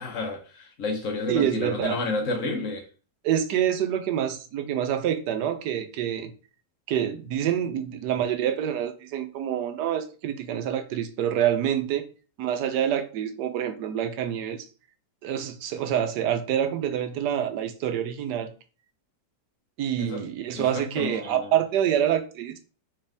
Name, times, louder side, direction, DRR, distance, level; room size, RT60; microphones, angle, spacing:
voice 1, 0.0-2.9 20.0-20.2 20.5-21.5, left 2 dB, 50° left, 1.3 m, -30 dB
voice 2, 1.3-2.0 3.2-6.3 6.9-12.0 12.4-14.7 15.2-18.5 19.8-22.6, right 10 dB, 75° right, 1.2 m, -27 dB
4.1 x 3.5 x 3.4 m
omnidirectional pair, 1.9 m